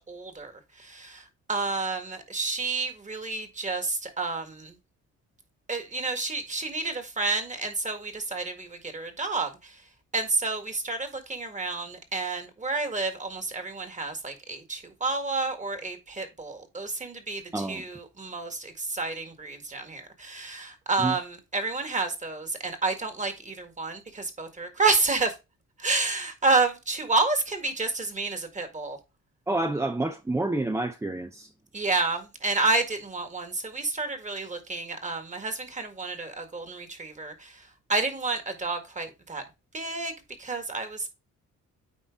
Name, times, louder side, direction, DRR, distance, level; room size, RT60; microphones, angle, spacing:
voice 1, 0.1-0.5 0.8-1.2 1.5-4.7 5.7-9.7 10.1-25.3 25.8-29.0 31.7-37.5 37.9-39.4 39.7-40.1 40.4-41.1, right 3 dB, 25° right, 1.8 m, -30 dB
voice 2, 17.5-17.9 21.0-21.2 29.5-31.5, right 2 dB, 10° right, 0.5 m, -28 dB
9.2 x 4.0 x 3.7 m
cardioid pair, 90°, 30 cm